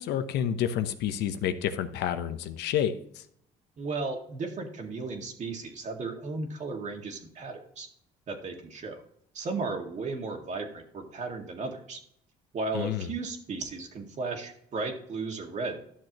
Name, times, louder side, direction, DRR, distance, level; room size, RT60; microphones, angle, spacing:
voice 1, 0.0-3.2 12.7-13.1, left 9 dB, 80° left, 0.9 m, -29 dB
voice 2, 3.8-7.9 8.3-9.0 9.3-12.0 12.5-15.8, right 3 dB, 45° right, 2.0 m, -35 dB
12.0 x 6.5 x 3.0 m
cardioid pair, 110°, 17 cm